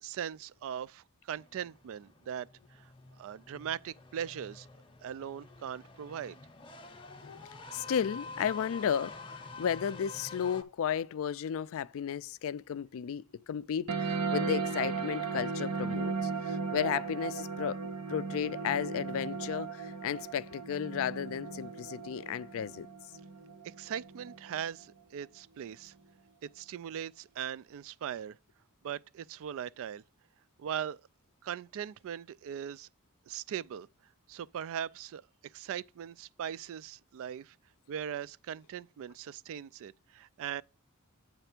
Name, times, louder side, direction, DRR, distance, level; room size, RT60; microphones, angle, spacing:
voice 1, 0.0-2.9 3.2-4.7 5.0-6.4 23.6-25.9 26.4-28.4 28.8-30.0 30.6-31.0 31.4-32.9 33.3-33.9 34.3-35.2 35.5-37.6 37.9-40.6, right 9 dB, 65° right, 0.3 m, -40 dB
sound 1, 1.3-10.6, left 3 dB, 25° left, 0.7 m, -48 dB
voice 2, 7.7-17.8 18.1-22.9, left 8 dB, 65° left, 0.3 m, -34 dB
sound 2, 13.9-24.9, right 5 dB, 85° right, 0.9 m, -36 dB
8.0 x 3.3 x 5.9 m
head